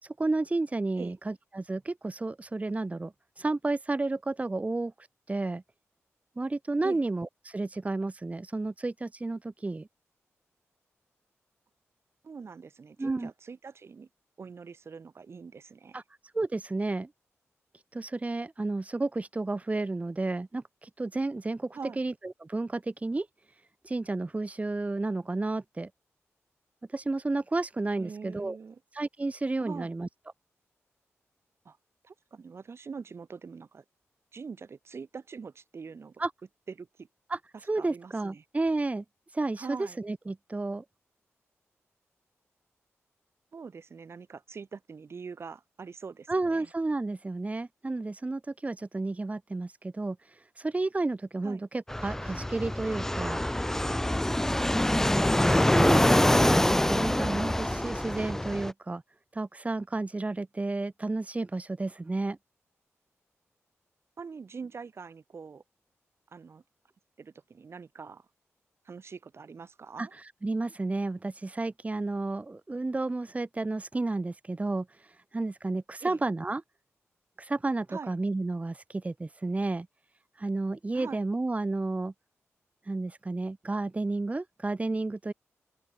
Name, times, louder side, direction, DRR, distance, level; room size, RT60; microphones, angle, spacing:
voice 1, 0.0-5.6 6.4-9.9 13.0-13.3 15.9-16.0 16.3-17.1 17.9-23.3 23.8-25.9 26.9-28.6 28.9-30.1 36.2-36.3 37.3-37.4 37.7-39.0 39.3-40.8 46.3-53.4 55.7-59.0 59.3-62.4 70.0-76.6 77.4-79.9 80.4-82.1 82.9-85.3, right 2 dB, 25° right, 2.1 m, -32 dB
voice 2, 12.2-14.1 14.4-16.0 21.7-22.0 28.0-28.8 29.6-29.9 31.6-31.8 32.0-33.8 34.3-36.1 36.8-37.1 37.7-38.4 39.6-40.0 43.5-46.7 51.4-51.6 64.2-65.6 66.3-66.6 67.2-68.3 68.8-70.1 76.0-76.2 77.9-78.1 80.9-81.2, right 5 dB, 55° right, 3.0 m, -43 dB
Fixed-wing aircraft airplane, 51.9-58.7, left 1 dB, 10° left, 0.8 m, -25 dB
open air
cardioid pair, 70°, 5 cm